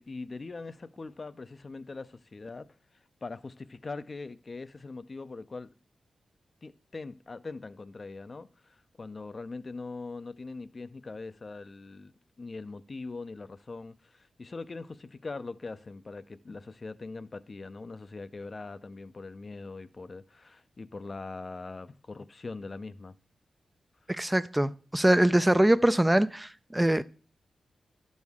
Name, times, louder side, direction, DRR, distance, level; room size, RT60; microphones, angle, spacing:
voice 1, 0.0-2.7 3.2-5.7 6.6-23.1, left 3 dB, 45° left, 0.5 m, -42 dB
voice 2, 24.1-27.0, right 1 dB, 10° right, 0.4 m, -23 dB
11.5 x 6.3 x 3.5 m
cardioid pair, 60°, 0 cm